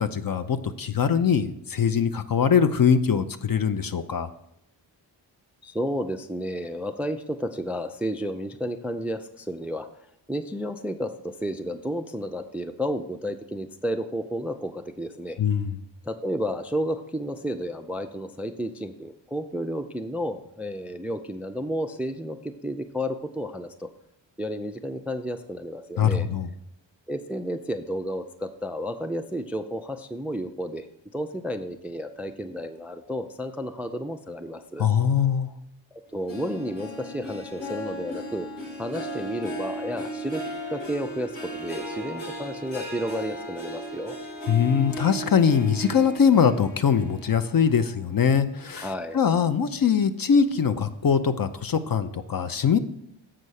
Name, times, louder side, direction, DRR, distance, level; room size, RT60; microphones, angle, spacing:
voice 1, 0.0-4.3 15.4-15.8 26.0-26.5 34.8-35.5 44.5-48.9 49.1-52.8, left 7 dB, 50° left, 11 dB, 0.6 m, -22 dB
voice 2, 5.6-9.9 10.3-15.4 16.1-23.9 24.4-26.3 27.1-30.9 31.1-34.9 35.9-38.5 38.8-40.4 40.7-44.2 48.7-49.2, equal, 5° right, 9 dB, 0.3 m, -32 dB
Harp, 36.3-49.0 49.4-49.8 50.3-50.4, equal, 90° left, 2.4 m, -36 dB
7.6 x 5.5 x 6.3 m, 0.79 s
wide cardioid pair, 130°, 45 cm